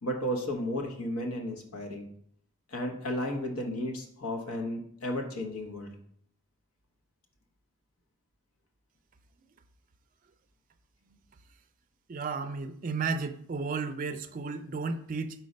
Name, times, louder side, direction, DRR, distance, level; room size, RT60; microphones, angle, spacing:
voice 1, 0.0-2.1 2.7-5.9, left 1 dB, 80° left, 2 dB, 1.1 m, -33 dB
voice 2, 12.1-15.5, right 4 dB, 35° right, 8 dB, 0.4 m, -33 dB
4.6 x 4.1 x 5.2 m, 0.68 s
head